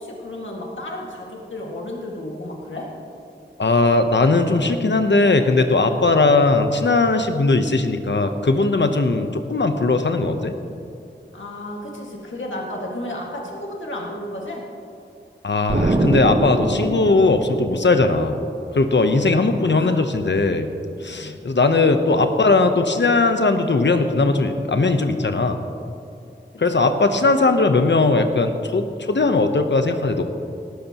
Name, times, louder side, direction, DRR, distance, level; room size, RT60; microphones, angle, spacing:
voice 1, 0.0-2.9 11.3-14.7 19.8-20.0 21.1-21.4 26.5-26.9, left 1 dB, 85° left, -2 dB, 2.0 m, -33 dB
voice 2, 3.6-10.5 15.4-18.4 18.7-20.7 21.0-25.6 26.6-30.2, left 3 dB, 70° left, 7 dB, 0.9 m, -19 dB
Explosion, 15.7-18.4, right 2 dB, 40° right, 1.2 m, -23 dB
18.0 x 13.5 x 3.0 m, 2.5 s
wide cardioid pair, 55°, 19 cm